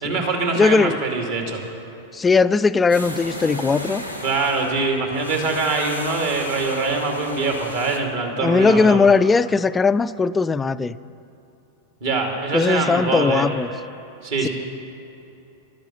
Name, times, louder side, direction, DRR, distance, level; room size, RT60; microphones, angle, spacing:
voice 1, 0.0-1.6 4.2-9.0 12.0-13.5 14.2-14.5, right 3 dB, 55° right, 1 dB, 2.5 m, -23 dB
voice 2, 0.6-1.0 2.1-4.0 8.4-11.0 12.5-13.7 14.4-14.5, left 4 dB, 15° left, 16 dB, 0.3 m, -18 dB
sound 1, 2.9-8.0, equal, 85° right, 1.1 m, -34 dB
12.0 x 10.0 x 7.5 m, 2.8 s
figure-of-eight pair, 90°, 0 cm